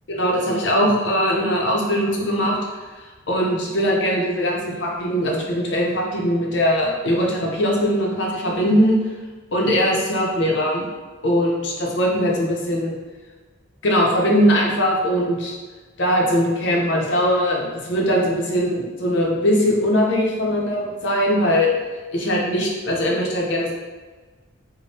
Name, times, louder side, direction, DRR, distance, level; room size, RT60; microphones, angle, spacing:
voice 1, 0.1-2.6 3.3-9.0 9.5-10.8 11.2-13.0 13.8-15.6 16.0-21.7 22.1-23.7, equal, 65° left, -2 dB, 0.6 m, -20 dB
3.4 x 2.1 x 4.1 m, 1.3 s
head